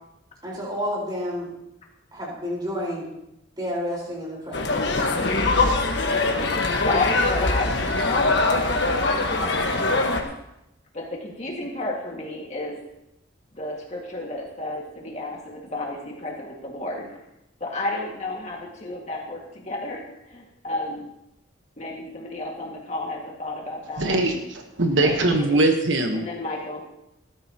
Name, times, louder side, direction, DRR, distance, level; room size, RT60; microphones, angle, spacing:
voice 1, 0.4-1.5 2.1-3.1 3.6-5.0, equal, 20° right, -4 dB, 4.7 m, -30 dB
sound 1, 4.5-10.2, left 3 dB, 55° left, 1.5 m, -22 dB
voice 2, 6.8-10.0 10.9-12.8 13.5-17.2 17.6-21.1 21.8-24.2 25.0-25.6 26.1-26.8, left 2 dB, 35° left, -1 dB, 2.0 m, -32 dB
voice 3, 24.0-24.4 24.8-26.2, right 2 dB, 70° right, 4 dB, 1.3 m, -21 dB
18.0 x 13.0 x 3.0 m, 0.86 s
head